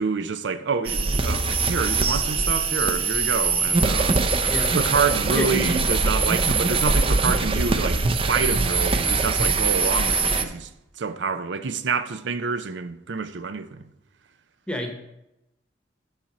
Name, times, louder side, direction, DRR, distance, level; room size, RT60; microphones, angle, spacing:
voice 1, 0.0-4.2 4.7-10.7 11.0-13.9, right 5 dB, 90° right, 0.6 m, -27 dB
sound 1, 0.9-10.4, right 4 dB, 30° right, 0.5 m, -22 dB
voice 2, 4.5-4.8 5.3-5.8 14.7-14.9, left 1 dB, 5° left, 1.0 m, -28 dB
8.8 x 4.3 x 5.9 m
head